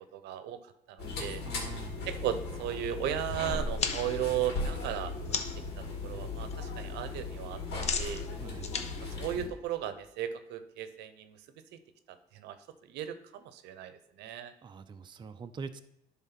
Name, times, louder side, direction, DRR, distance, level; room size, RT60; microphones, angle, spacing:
voice 1, 0.1-0.6 1.0-1.4 2.1-5.4 6.0-7.6 8.0-8.2 9.2-11.4 12.3-12.5 12.9-13.1 13.4-14.5, right 11 dB, 85° right, 11 dB, 0.8 m, -35 dB
sound 1, 1.0-9.5, left 3 dB, 75° left, 2.3 m, -37 dB
voice 2, 1.4-2.0 8.4-8.8 14.6-15.8, right 5 dB, 25° right, 9 dB, 0.5 m, -44 dB
sound 2, 3.8-5.7 6.1-6.5 6.8-10.1, left 6 dB, 40° left, 0.8 m, -37 dB
10.5 x 3.7 x 5.8 m, 0.78 s
cardioid pair, 110°, 17 cm